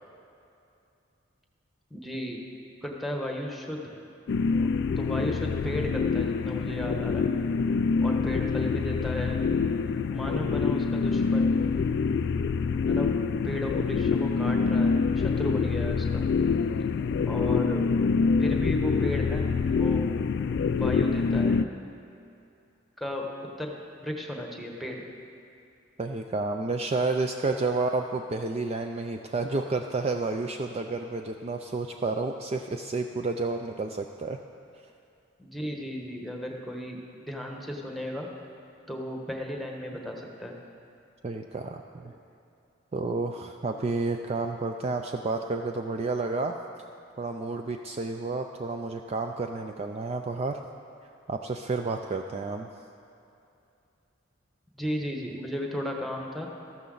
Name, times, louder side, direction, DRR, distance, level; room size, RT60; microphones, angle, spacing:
voice 1, 1.9-2.4 2.8-3.9 4.4-4.7 5.0-7.3 8.0-9.4 10.1-11.5 12.9-13.1 13.4-16.2 17.3-17.8 18.4-20.1 20.7-21.6 23.0-23.3 23.6-23.7 24.0-25.0 35.4-38.3 38.9-40.5 54.8-56.5, left 1 dB, ahead, 0 dB, 1.1 m, -34 dB
sound 1, 4.3-21.6, left 5 dB, 60° left, 0.3 m, -26 dB
voice 2, 26.0-34.4 41.2-42.1 42.9-46.5 47.2-50.6 51.3-52.7, right 3 dB, 30° right, 4 dB, 0.4 m, -30 dB
14.0 x 12.0 x 4.0 m, 2.6 s
head